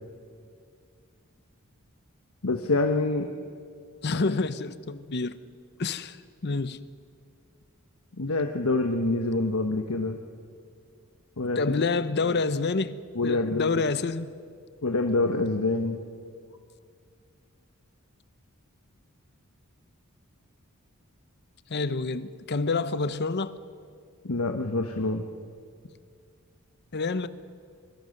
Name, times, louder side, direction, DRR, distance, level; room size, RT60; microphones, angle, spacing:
voice 1, 2.4-3.3 4.1-4.2 8.2-10.2 11.4-11.7 13.1-13.7 14.8-16.0 24.2-25.2, left 2 dB, 80° left, 1.2 m, -26 dB
voice 2, 4.0-5.4 5.8-6.2 6.4-6.8 11.6-13.0 13.2-14.3 21.7-23.5 26.9-27.3, left 3 dB, 50° left, 0.8 m, -27 dB
24.5 x 23.0 x 6.6 m
head